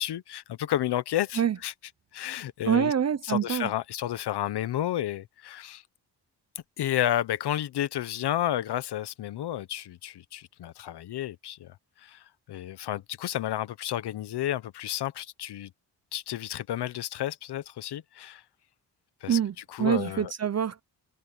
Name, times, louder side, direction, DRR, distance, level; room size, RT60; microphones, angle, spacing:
voice 1, 0.0-1.7 2.1-2.9 3.2-5.8 6.8-15.7 16.1-18.4 19.2-19.4 19.7-20.3, left 12 dB, 75° left, 1.2 m, -31 dB
voice 2, 2.6-3.7 19.3-20.8, right 8 dB, 40° right, 0.9 m, -26 dB
cardioid pair, 85°, 40 cm